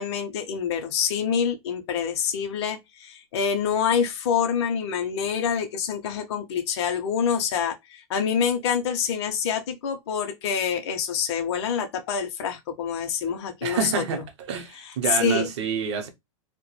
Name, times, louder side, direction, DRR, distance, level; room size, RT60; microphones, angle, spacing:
voice 1, 0.0-14.0 14.8-15.5, left 7 dB, 50° left, 0.5 m, -26 dB
voice 2, 13.6-14.2 14.5-16.1, right 6 dB, 55° right, 0.7 m, -27 dB
2.2 x 2.1 x 3.0 m
supercardioid pair, 170°, 17 cm